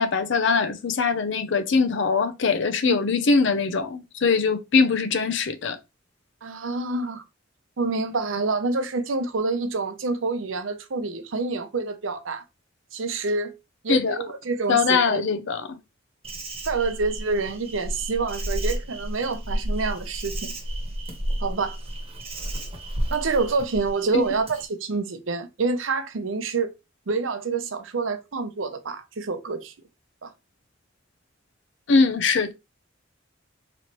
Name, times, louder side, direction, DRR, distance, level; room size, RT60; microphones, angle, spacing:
voice 1, 0.0-5.8 13.9-14.2 14.7-15.8 24.1-24.2 31.9-32.5, left 4 dB, 65° left, 0.6 m, -22 dB
voice 2, 6.4-7.2 7.8-12.4 12.9-13.5 13.8-15.2 16.7-20.5 21.4-21.8 23.1-26.7 27.1-29.7 30.2-30.3, right 3 dB, 90° right, 0.7 m, -27 dB
Insect, 16.2-24.7, right 1 dB, 30° right, 1.0 m, -32 dB
4.1 x 3.1 x 3.0 m
head